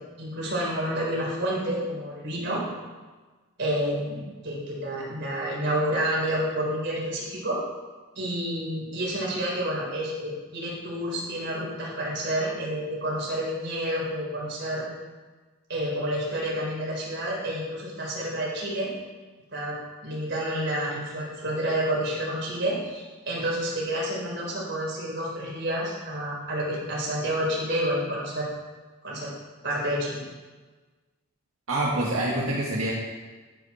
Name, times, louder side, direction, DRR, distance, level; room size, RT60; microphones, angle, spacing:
voice 1, 0.2-2.6 3.6-7.6 8.2-14.9 15.7-18.9 19.5-28.5 29.0-29.3 29.6-30.2, right 1 dB, 55° right, -4 dB, 4.1 m, -29 dB
voice 2, 31.7-32.9, right 1 dB, 85° right, -4 dB, 1.7 m, -26 dB
12.0 x 10.5 x 4.3 m, 1.3 s
head